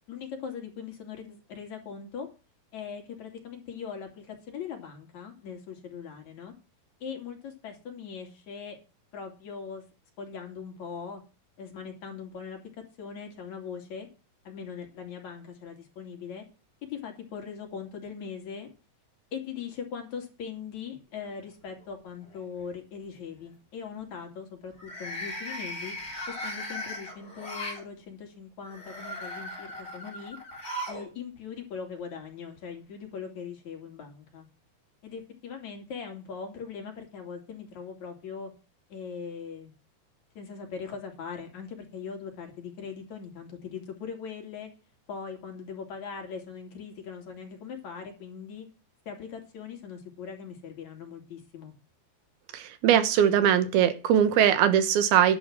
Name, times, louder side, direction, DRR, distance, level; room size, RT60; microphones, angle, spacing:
voice 1, 0.1-2.3 2.7-6.5 7.0-8.8 9.1-9.8 10.2-11.2 11.6-12.6 13.0-14.1 14.5-16.5 16.9-18.7 19.3-25.9 26.3-30.4 30.9-34.5 35.0-38.5 38.9-39.7 40.4-44.7 45.1-48.7 49.1-51.7, left 6 dB, 50° left, 4 dB, 3.8 m, -40 dB
sound 1, 21.2-21.8 22.2-22.6 24.7-27.8 28.6-31.1 31.4-31.5 32.6-32.7, left 1 dB, 20° left, 2.9 m, -38 dB
voice 2, 52.5-55.4, right 9 dB, 90° right, 11 dB, 3.2 m, -21 dB
11.0 x 8.1 x 6.1 m, 0.31 s
omnidirectional pair, 4.2 m